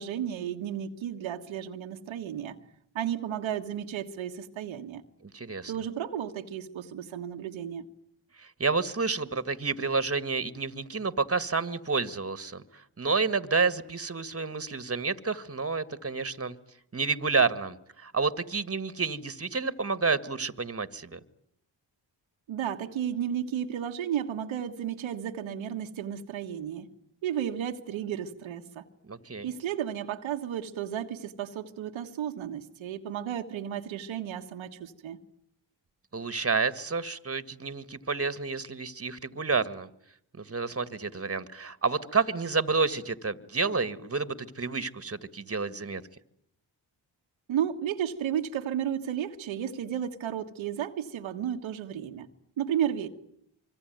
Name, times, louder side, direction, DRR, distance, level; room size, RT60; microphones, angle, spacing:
voice 1, 0.0-2.6 2.9-5.0 5.7-7.9 22.5-26.9 27.2-28.8 29.4-35.2 47.5-52.3 52.6-53.1, right 9 dB, 85° right, 4 dB, 1.5 m, -33 dB
voice 2, 5.3-5.7 8.4-16.6 16.9-21.2 29.1-29.5 36.1-39.9 40.4-46.0, right 4 dB, 30° right, 14 dB, 1.9 m, -29 dB
24.5 x 24.5 x 9.4 m, 0.73 s
supercardioid pair, 45°, 46 cm